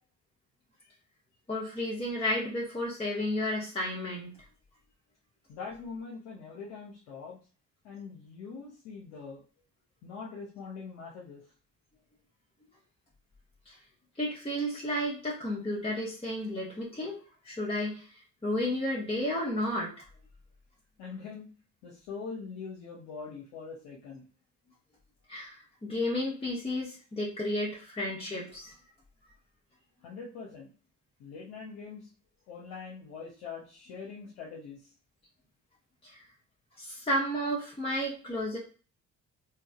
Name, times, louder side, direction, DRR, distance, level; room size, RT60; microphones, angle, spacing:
voice 1, 1.5-4.3 13.7-13.8 14.2-17.1 17.4-18.0 18.4-19.9 25.3-28.7 36.0-36.2 36.8-38.6, left 1 dB, 15° left, -6 dB, 1.2 m, -32 dB
voice 2, 5.5-7.4 7.8-9.4 10.0-11.4 21.0-21.5 21.8-24.3 30.0-30.7 31.2-32.1 32.5-34.8, left 5 dB, 70° left, -2 dB, 0.8 m, -43 dB
3.9 x 2.3 x 2.4 m, 0.37 s
hypercardioid pair, 45°, 39 cm